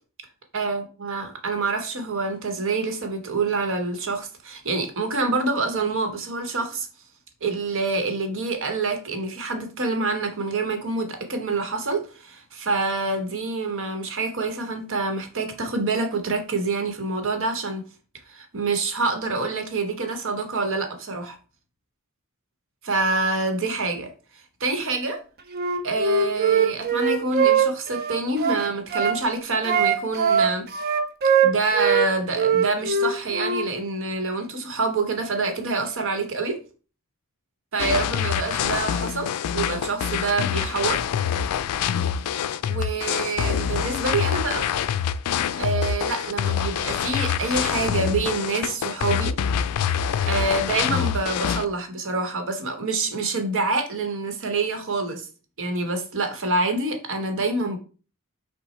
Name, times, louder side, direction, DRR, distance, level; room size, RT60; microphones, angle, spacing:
voice 1, 0.5-6.9 7.4-17.8 18.3-21.4 22.8-24.1 24.6-25.2 25.8-30.7 31.4-36.6 37.7-41.0 42.7-44.7 45.6-49.3 49.9-55.3 55.6-57.8, right 3 dB, 60° right, 1.0 m, -26 dB
Wind instrument woodwind instrument, 25.5-29.2 29.6-32.1 32.4-33.7, right 6 dB, 45° right, 0.6 m, -21 dB
sound 1, 37.8-51.6, left 8 dB, 90° left, 0.3 m, -25 dB
5.7 x 2.1 x 4.1 m
head